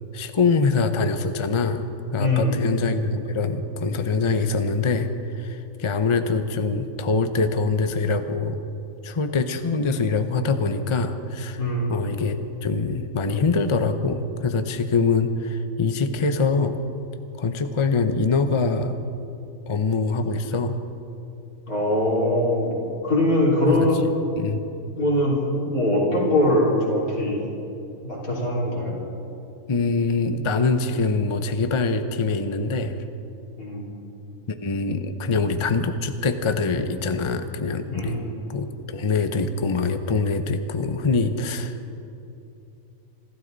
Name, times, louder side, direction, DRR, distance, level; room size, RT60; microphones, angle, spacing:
voice 1, 0.1-8.6 9.0-11.6 11.9-16.8 17.4-19.1 19.7-20.8 23.7-23.9 24.4-24.6 29.7-33.0 34.5-38.2 38.5-41.8, left 4 dB, 30° left, 8 dB, 0.5 m, -24 dB
voice 2, 2.2-2.6 11.6-11.9 21.7-22.8 23.0-24.0 24.9-27.4 28.0-28.9 33.6-33.9 37.9-38.2, left 1 dB, 75° left, -4 dB, 4.0 m, -22 dB
26.0 x 13.0 x 4.0 m, 2.8 s
omnidirectional pair, 1.5 m